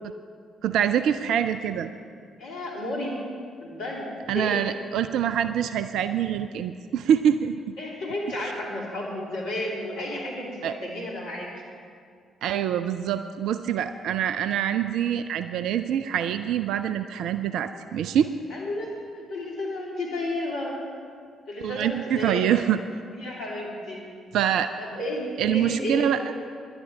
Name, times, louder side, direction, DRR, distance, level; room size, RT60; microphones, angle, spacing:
voice 1, 0.6-1.9 4.3-7.7 10.6-10.7 12.4-18.3 21.6-22.8 24.3-24.7 25.4-26.2, right 9 dB, 60° right, 10 dB, 0.4 m, -25 dB
voice 2, 2.4-3.2 3.6-4.6 7.8-11.5 18.5-20.8 21.5-22.6 23.1-24.0 24.8-26.1, left 1 dB, 65° left, -4 dB, 2.9 m, -32 dB
18.0 x 11.0 x 4.5 m, 2.2 s
figure-of-eight pair, 40°, 0 cm